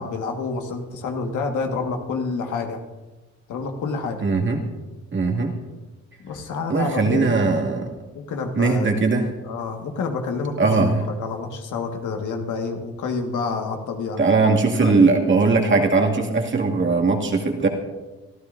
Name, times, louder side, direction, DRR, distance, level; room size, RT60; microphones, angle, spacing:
voice 1, 0.0-2.8 3.5-4.3 6.2-7.5 8.1-8.9 9.4-14.2 14.8-15.0, left 4 dB, 75° left, 3 dB, 1.8 m, -28 dB
voice 2, 4.2-4.6 5.1-5.5 6.7-7.9 8.6-9.3 10.6-11.0 14.2-17.7, right 3 dB, 40° right, 1 dB, 2.3 m, -19 dB
25.0 x 13.5 x 2.7 m, 1.2 s
cardioid pair, 90°, 30 cm